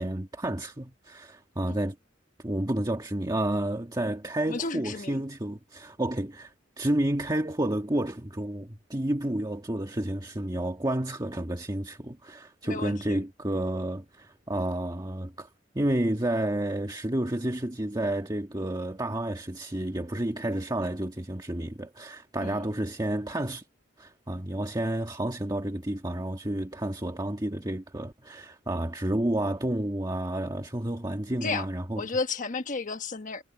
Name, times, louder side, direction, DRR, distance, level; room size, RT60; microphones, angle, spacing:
voice 1, 0.0-2.0 2.4-15.5 15.7-23.6 24.0-32.0, right 1 dB, 20° right, 1.5 m, -30 dB
voice 2, 4.5-5.2 12.6-13.2 22.4-22.6 31.4-31.7 32.0-33.4, left 4 dB, 45° left, 1.3 m, -33 dB
head